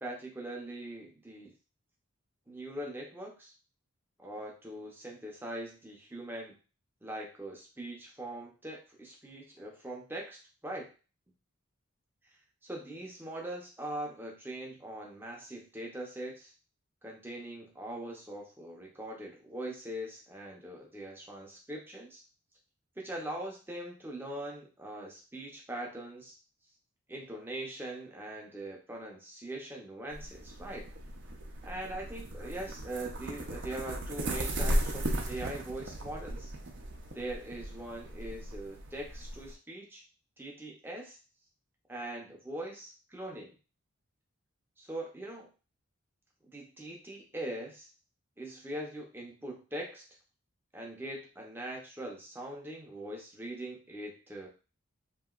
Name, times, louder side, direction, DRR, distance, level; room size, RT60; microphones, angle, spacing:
voice 1, 0.0-1.5 2.5-3.5 4.2-6.5 7.0-10.9 12.6-16.5 17.0-22.2 23.0-26.4 27.1-30.9 31.6-36.5 37.1-40.0 40.4-41.2 41.9-43.5 44.8-45.5 46.4-47.9 48.4-50.0 50.7-54.5, right 1 dB, 10° right, -1 dB, 0.6 m, -41 dB
sound 1, 30.1-39.5, right 1 dB, 55° right, 0.5 m, -36 dB
2.9 x 2.7 x 2.4 m, 0.34 s
head